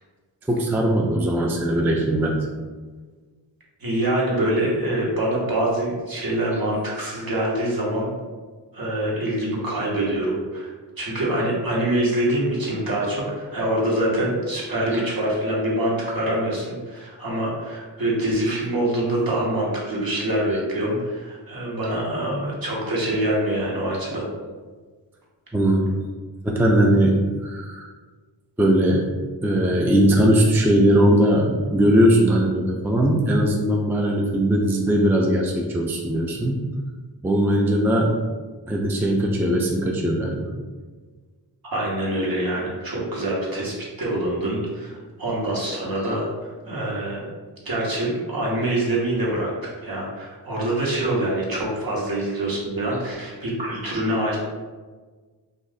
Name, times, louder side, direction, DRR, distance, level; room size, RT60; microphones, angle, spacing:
voice 1, 0.5-2.5 6.5-6.6 14.9-15.0 25.5-25.9 26.4-27.9 28.6-29.1 29.4-36.6 37.2-38.1 38.7-40.5, right 1 dB, 5° right, 0 dB, 0.4 m, -20 dB
voice 2, 3.8-8.1 8.7-10.7 11.0-24.2 41.7-46.3 46.6-47.2 47.6-54.4, right 1 dB, 50° right, -4 dB, 1.3 m, -25 dB
2.5 x 2.5 x 4.0 m, 1.4 s
cardioid pair, 45°, 44 cm